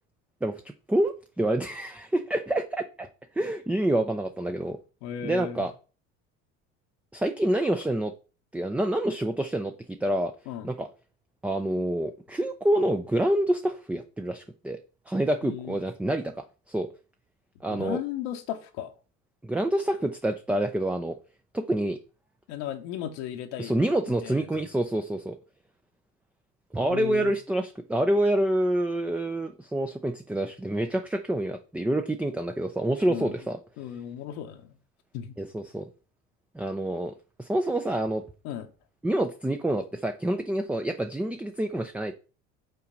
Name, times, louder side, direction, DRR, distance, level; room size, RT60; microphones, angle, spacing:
voice 1, 0.9-3.1 3.4-4.8 5.2-5.7 7.1-8.1 8.5-10.3 10.6-10.9 11.4-14.8 15.1-16.9 17.6-18.0 19.4-21.2 21.5-22.0 23.6-25.4 26.7-33.6 35.4-35.9 36.5-37.1 37.4-38.2 39.0-42.1, right 1 dB, 5° right, 0.4 m, -27 dB
voice 2, 5.0-5.7 10.5-10.7 15.4-15.8 17.7-18.9 22.5-23.8 24.1-24.5 26.9-27.3 33.1-33.3 33.8-34.8 35.1-35.4 38.4-38.7, left 10 dB, 75° left, 1.0 m, -35 dB
5.7 x 3.9 x 5.2 m
supercardioid pair, 90°, 36 cm